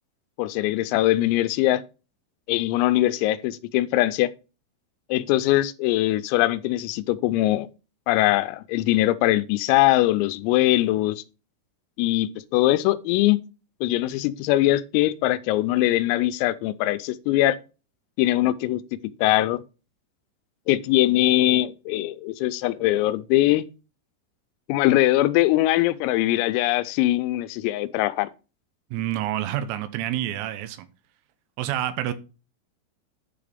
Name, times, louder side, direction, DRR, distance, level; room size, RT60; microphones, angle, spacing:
voice 1, 0.4-1.8 2.5-4.3 5.1-7.7 8.1-11.2 12.0-13.4 13.8-17.6 18.2-19.6 20.7-23.7 24.7-28.3, left 16 dB, 90° left, 3.3 m, -22 dB
voice 2, 28.9-30.9 31.6-32.1, right 12 dB, 90° right, 3.7 m, -28 dB
10.0 x 5.0 x 5.1 m
omnidirectional pair, 6.0 m